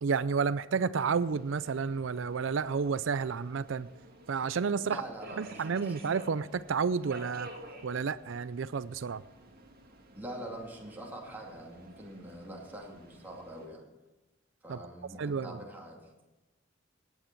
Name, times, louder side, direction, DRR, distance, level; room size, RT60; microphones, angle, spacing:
voice 1, 0.0-3.9 4.3-5.0 5.4-7.5 7.8-9.2 14.7-14.8 15.2-15.6, right 5 dB, 70° right, 16 dB, 0.4 m, -31 dB
Subway metro underground, 1.0-13.7, right 2 dB, 50° right, 2.5 m, -52 dB
voice 2, 4.8-6.0 10.1-13.8 14.6-16.0, right 1 dB, 10° right, -2 dB, 2.4 m, -44 dB
17.5 x 9.3 x 4.5 m, 1.1 s
head